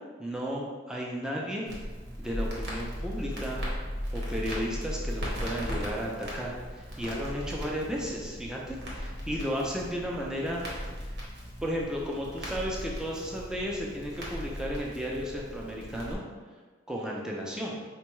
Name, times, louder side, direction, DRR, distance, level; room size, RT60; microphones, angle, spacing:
voice 1, 0.2-1.7 2.2-3.6 4.1-10.6 11.6-16.2 16.9-17.8, equal, 5° right, -3 dB, 0.4 m, -34 dB
Crackle, 1.7-16.1, equal, 60° right, 0.9 m, -37 dB
4.3 x 2.2 x 3.0 m, 1.4 s
head